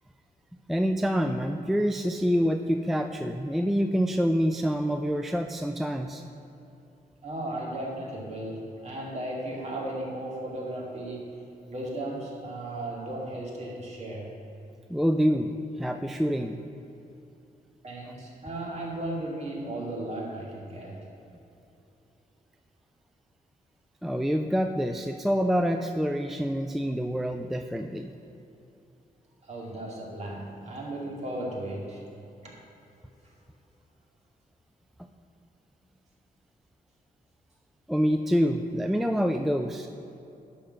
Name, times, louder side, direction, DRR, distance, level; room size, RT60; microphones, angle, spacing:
voice 1, 0.7-6.2 14.9-16.6 24.0-28.1 37.9-39.9, equal, ahead, 6 dB, 0.3 m, -26 dB
voice 2, 7.2-11.4 11.7-14.3 17.8-21.0 29.4-32.0 32.4-32.5 33.2-33.3, right 1 dB, 45° right, -3 dB, 2.3 m, -35 dB
11.0 x 4.3 x 6.6 m, 2.9 s
wide cardioid pair, 115°, 16 cm